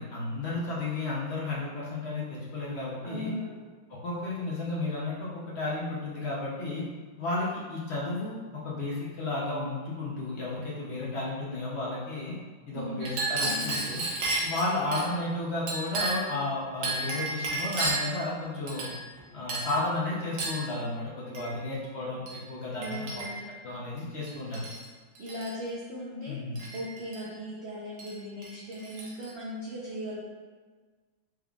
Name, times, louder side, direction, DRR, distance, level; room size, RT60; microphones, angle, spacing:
voice 1, 0.0-3.3 3.9-6.8 7.2-12.3 12.7-14.0 14.4-18.9 19.3-23.0 23.6-24.7 26.3-26.6, left 2 dB, 65° left, -6 dB, 0.6 m, -33 dB
voice 2, 3.0-3.6 12.7-13.1 13.4-13.8 22.7-23.4 25.2-26.4 26.7-30.2, equal, 60° right, -7 dB, 0.7 m, -38 dB
Chink clink, 13.0-15.1 15.7-16.3 16.8-18.2 18.7-19.2 19.5-19.8 20.4-20.7 21.3-21.5 22.3-22.4 22.8-23.5 24.2-24.9 25.2-25.5 26.6-27.2 28.0-28.1 28.4-29.3, right 2 dB, 85° right, 1.6 m, -32 dB
4.8 x 3.4 x 2.3 m, 1.5 s
omnidirectional pair, 2.0 m